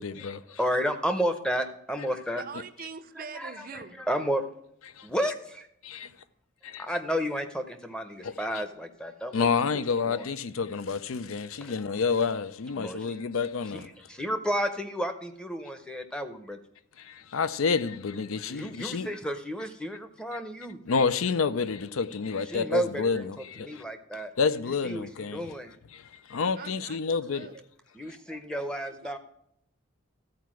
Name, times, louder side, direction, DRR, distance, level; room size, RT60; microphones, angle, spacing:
voice 1, 0.0-0.6 5.0-5.1 5.8-6.1 6.7-7.0 8.2-8.6 9.3-13.9 17.0-19.2 20.9-23.8 24.4-25.5 25.9-27.5 28.1-28.2, left 5 dB, 85° left, 0.5 m, -29 dB
voice 2, 0.6-2.4 3.3-4.4 5.0-5.7 6.8-9.5 10.1-10.2 12.8-13.0 13.7-13.8 14.1-16.6 18.5-20.8 22.5-23.2 23.6-24.3 24.8-25.1 25.3-25.7 27.9-29.2, equal, 5° left, 0.6 m, -31 dB
voice 3, 2.1-4.0 6.0-6.1 26.6-27.7 28.8-29.2, right 5 dB, 45° right, 0.5 m, -44 dB
13.5 x 4.6 x 6.1 m
head